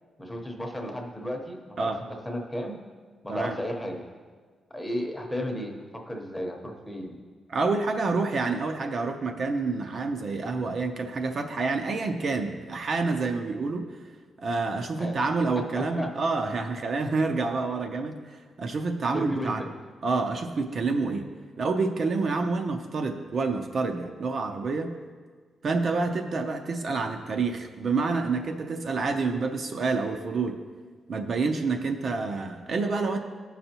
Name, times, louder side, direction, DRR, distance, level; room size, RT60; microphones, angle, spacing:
voice 1, 0.2-1.9 2.2-2.8 3.2-4.0 4.7-7.2 15.0-15.2 15.5-16.2 19.1-19.7, equal, 5° left, 2 dB, 0.9 m, -33 dB
voice 2, 7.5-13.9 14.4-19.6 20.0-21.3 21.6-24.9 25.6-30.6 31.1-33.2, right 3 dB, 45° right, 4 dB, 0.5 m, -28 dB
15.5 x 5.5 x 2.9 m, 1.6 s
wide cardioid pair, 170°, 0 cm